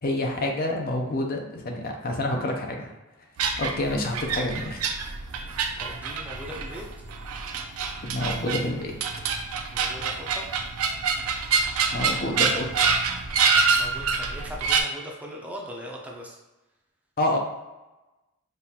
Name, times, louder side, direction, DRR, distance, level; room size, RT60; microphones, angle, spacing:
voice 1, 0.0-2.9 3.6-4.8 8.0-9.0 11.9-13.0 17.2-17.4, left 1 dB, 45° left, 2 dB, 0.6 m, -28 dB
sound 1, 3.4-14.8, right 5 dB, 85° right, 0.5 m, -26 dB
voice 2, 5.8-6.9 9.7-10.5 13.8-16.4, equal, 5° right, -2 dB, 0.5 m, -39 dB
5.3 x 2.4 x 2.8 m, 1.1 s
head